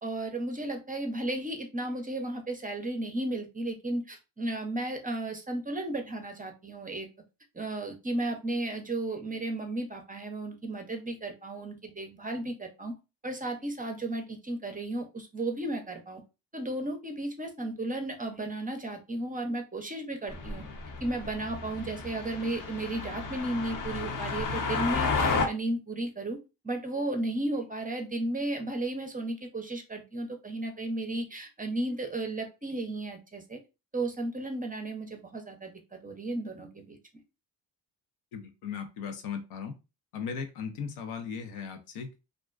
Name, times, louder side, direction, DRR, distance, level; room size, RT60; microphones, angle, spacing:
voice 1, 0.0-7.1 7.5-12.9 13.2-16.2 16.5-20.6 21.0-26.4 26.6-33.6 33.9-37.0, right 2 dB, 15° right, 5 dB, 0.5 m, -34 dB
sound 1, 20.3-25.5, left 4 dB, 40° left, 0.7 m, -32 dB
voice 2, 38.3-39.7 40.1-42.2, left 6 dB, 75° left, 6 dB, 0.7 m, -37 dB
2.4 x 2.1 x 2.3 m, 0.28 s
hypercardioid pair, 50°, 50 cm